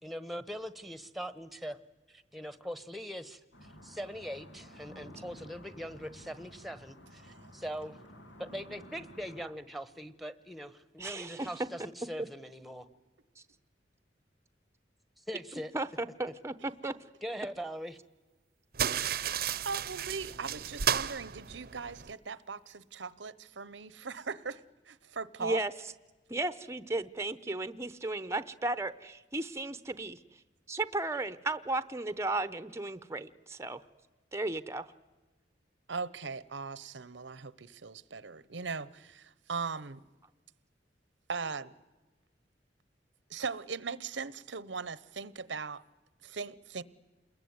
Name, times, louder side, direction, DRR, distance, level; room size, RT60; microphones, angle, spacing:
voice 1, 0.0-1.8 2.1-8.0 8.4-12.9 15.3-15.7 17.2-18.0, equal, ahead, 1.2 m, -41 dB
sound 1, 3.5-9.4, equal, 90° left, 3.1 m, -52 dB
voice 2, 11.0-11.5 15.7-16.9 25.4-25.7 26.3-30.2 30.7-33.8 34.3-34.9, right 2 dB, 15° right, 0.8 m, -34 dB
sound 2, 18.7-22.1, right 9 dB, 55° right, 0.8 m, -33 dB
voice 3, 19.6-25.6 35.9-40.0 41.3-41.7 43.3-45.8 46.2-46.8, right 5 dB, 85° right, 1.0 m, -39 dB
28.5 x 21.5 x 9.5 m
head